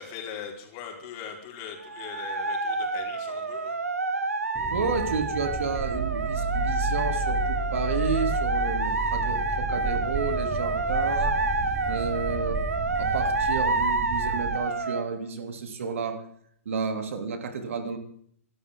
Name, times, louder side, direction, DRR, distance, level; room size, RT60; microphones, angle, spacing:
voice 1, 0.0-3.7, left 7 dB, 35° left, 1 dB, 4.8 m, -40 dB
sound 1, 1.8-15.0, right 3 dB, 90° right, 1.7 m, -28 dB
sound 2, 4.5-14.6, right 3 dB, 20° right, 1.3 m, -32 dB
voice 2, 4.7-11.3 11.9-16.2 16.6-18.0, right 5 dB, 65° right, 6 dB, 3.1 m, -31 dB
27.5 x 12.5 x 3.8 m, 0.65 s
hypercardioid pair, 130°, 8 cm